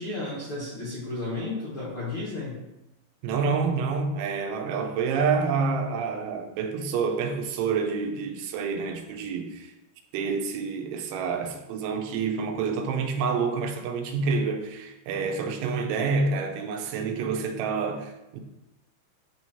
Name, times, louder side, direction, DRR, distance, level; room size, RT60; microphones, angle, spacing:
voice 1, 0.0-2.6, left 2 dB, 85° left, 1.2 m, -33 dB
voice 2, 3.2-9.7 10.1-18.4, right 5 dB, 85° right, 3.2 m, -28 dB
11.0 x 4.6 x 2.8 m
omnidirectional pair, 5.4 m